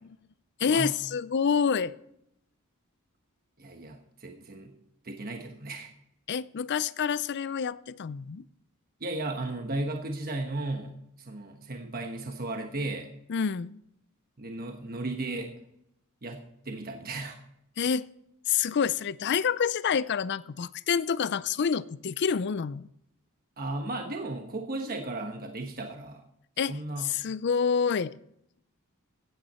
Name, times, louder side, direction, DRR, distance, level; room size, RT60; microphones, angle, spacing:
voice 1, 0.6-1.9 6.3-8.4 13.3-13.8 17.8-18.1 18.5-22.9 26.6-28.1, left 6 dB, 50° left, 0.4 m, -28 dB
voice 2, 3.6-4.7 5.0-5.9 9.0-10.9 11.2-13.1 14.4-15.5 16.2-17.4 23.6-26.2 26.7-27.1, right 2 dB, 45° right, 1.2 m, -35 dB
15.5 x 9.2 x 4.3 m
head